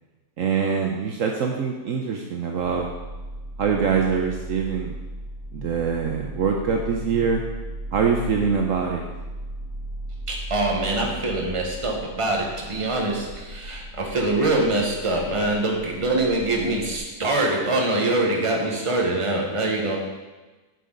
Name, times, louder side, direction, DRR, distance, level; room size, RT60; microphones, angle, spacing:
voice 1, 0.4-2.9 3.6-4.9 5.5-7.4 7.9-9.1, right 6 dB, 65° right, 1 dB, 1.0 m, -24 dB
sound 1, 2.6-17.0, right 1 dB, 70° left, 2.6 m, -37 dB
voice 2, 10.3-20.0, right 2 dB, 20° right, -1 dB, 1.2 m, -24 dB
8.0 x 6.8 x 3.8 m, 1.2 s
omnidirectional pair, 1.6 m